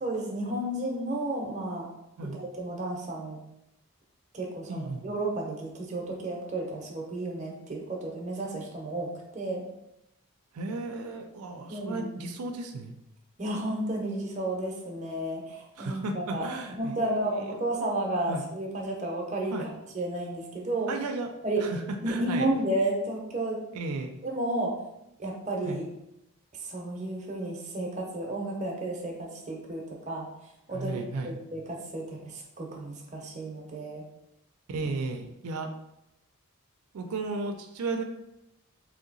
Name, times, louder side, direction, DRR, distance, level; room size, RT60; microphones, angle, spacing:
voice 1, 0.0-1.9 2.2-3.4 4.3-9.6 11.7-12.1 13.4-19.7 19.9-20.9 21.4-21.7 22.0-23.6 24.2-24.8 25.2-25.9 26.6-30.3 30.7-34.0, right 1 dB, 30° right, -1 dB, 0.6 m, -32 dB
voice 2, 4.7-5.0 10.5-13.0 15.8-17.5 18.3-18.4 19.5-19.7 20.9-21.3 21.6-22.5 23.7-24.1 25.6-25.8 30.7-31.3 34.7-35.7 36.9-38.0, right 3 dB, 90° right, 4 dB, 0.4 m, -34 dB
3.2 x 2.8 x 3.9 m, 0.86 s
head